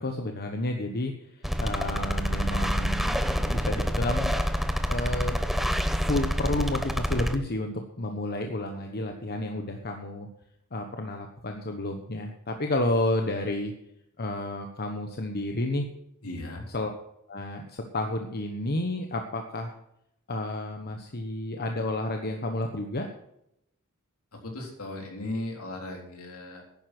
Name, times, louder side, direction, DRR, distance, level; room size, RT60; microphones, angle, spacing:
voice 1, 0.0-4.3 4.9-5.4 6.1-10.3 10.7-13.7 14.2-15.9 16.7-16.9 17.3-19.7 20.3-23.1, left 1 dB, 45° left, 4 dB, 1.3 m, -31 dB
sound 1, 1.4-7.4, equal, ahead, 0.9 m, -27 dB
voice 2, 16.2-16.6 24.3-26.6, left 2 dB, 70° left, 1 dB, 3.8 m, -37 dB
11.0 x 10.0 x 6.1 m, 0.79 s
head